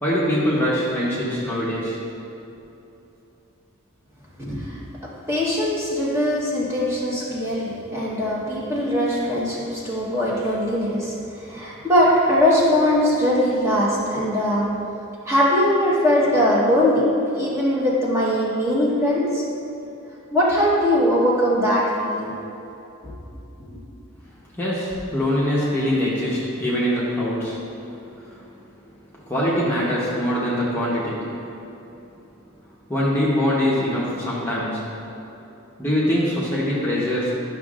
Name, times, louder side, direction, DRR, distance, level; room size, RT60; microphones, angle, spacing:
voice 1, 0.0-2.0 24.6-27.6 28.3-28.5 29.3-31.3 32.9-34.9 35.8-37.3, equal, 10° left, -8 dB, 1.0 m, -23 dB
voice 2, 4.4-4.8 5.3-14.7 15.3-17.0 17.3-19.4 20.3-22.3, equal, 10° right, -6 dB, 1.1 m, -21 dB
11.5 x 6.3 x 2.5 m, 2.9 s
head